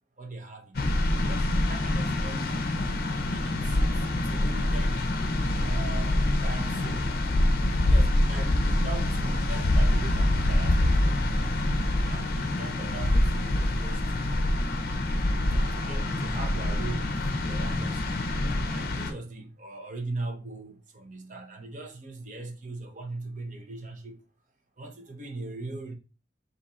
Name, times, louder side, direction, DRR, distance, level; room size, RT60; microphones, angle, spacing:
voice 1, 0.2-2.5 3.2-5.0 5.7-7.2 7.9-11.6 12.1-14.3 15.5-18.3 18.7-24.2 24.8-25.9, right 2 dB, 40° right, 0.8 m, -40 dB
sound 1, 0.7-19.1, left 1 dB, 50° left, 0.6 m, -25 dB
3.8 x 2.7 x 4.2 m
head